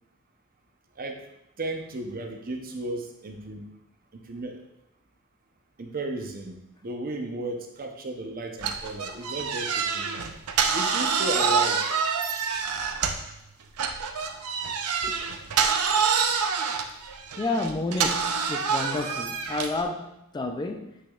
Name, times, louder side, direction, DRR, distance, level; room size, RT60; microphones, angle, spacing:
voice 1, 1.6-3.7 4.1-4.6 5.8-6.6 6.8-10.1 10.7-11.9, right 2 dB, 40° right, 3 dB, 0.8 m, -34 dB
sound 1, 8.6-13.3 13.8-19.8, right 6 dB, 85° right, 0.6 m, -26 dB
voice 2, 17.4-20.9, left 2 dB, 20° left, 5 dB, 0.4 m, -30 dB
8.0 x 6.1 x 2.4 m, 0.82 s
head